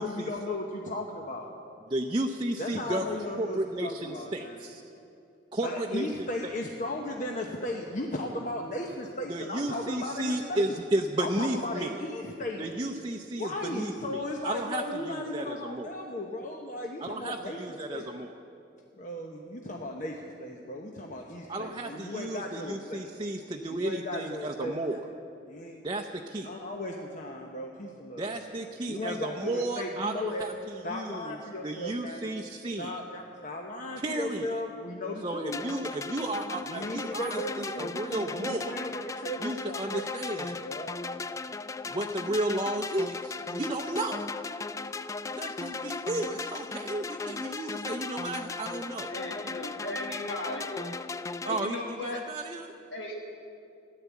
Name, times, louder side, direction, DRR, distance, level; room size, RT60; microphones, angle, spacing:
voice 1, 0.0-1.5 2.6-4.6 5.6-10.7 11.2-12.7 13.4-18.1 19.0-23.1 23.7-25.1 25.5-25.8 26.4-28.4 28.9-30.5 30.8-32.3 32.8-35.6 36.6-40.1 40.6-40.9, left 1 dB, 45° left, 1 dB, 1.0 m, -36 dB
voice 2, 1.9-4.8 5.5-6.3 9.3-11.9 12.6-15.9 17.0-18.3 21.5-25.0 25.8-26.5 28.2-31.4 31.6-33.0 34.0-34.5 35.2-38.8 39.4-40.6 41.9-44.2 45.3-49.1 51.4-52.7, right 1 dB, 25° right, 2 dB, 0.6 m, -33 dB
sound 1, 35.5-51.6, left 4 dB, 15° left, 0.3 m, -37 dB
voice 3, 49.1-50.9 51.4-52.2 52.9-53.2, left 1 dB, 80° left, 0 dB, 1.3 m, -37 dB
15.5 x 11.0 x 8.3 m, 2.6 s
head